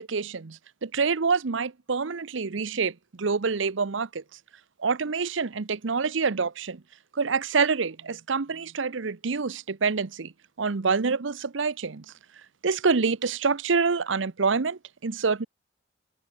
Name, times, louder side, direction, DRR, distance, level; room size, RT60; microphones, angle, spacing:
voice 1, 0.0-4.2 4.8-6.8 7.1-10.3 10.6-12.0 12.6-15.5, right 5 dB, 75° right, 0.8 m, -26 dB
head